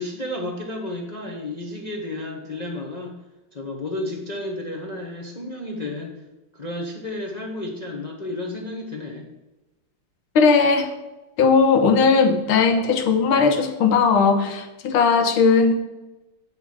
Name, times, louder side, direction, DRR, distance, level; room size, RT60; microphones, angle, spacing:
voice 1, 0.0-3.1 3.5-6.2 6.5-9.3, left 1 dB, 40° left, 0 dB, 0.5 m, -32 dB
voice 2, 10.3-10.9 11.4-15.7, left 5 dB, 85° left, 7 dB, 1.8 m, -18 dB
8.5 x 6.7 x 4.8 m, 1.0 s
omnidirectional pair, 2.3 m